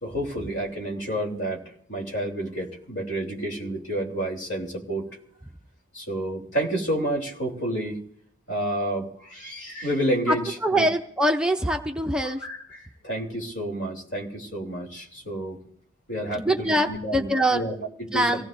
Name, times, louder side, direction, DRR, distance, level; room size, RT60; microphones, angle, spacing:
voice 1, 0.0-1.6 1.9-5.1 5.9-8.0 8.5-10.9 12.2-15.6 16.1-18.4, right 1 dB, 60° left, 0 dB, 3.4 m, -30 dB
voice 2, 10.6-12.4 16.5-17.6 18.1-18.4, right 1 dB, 5° right, 3 dB, 0.5 m, -23 dB
25.0 x 17.0 x 2.6 m, 0.68 s
head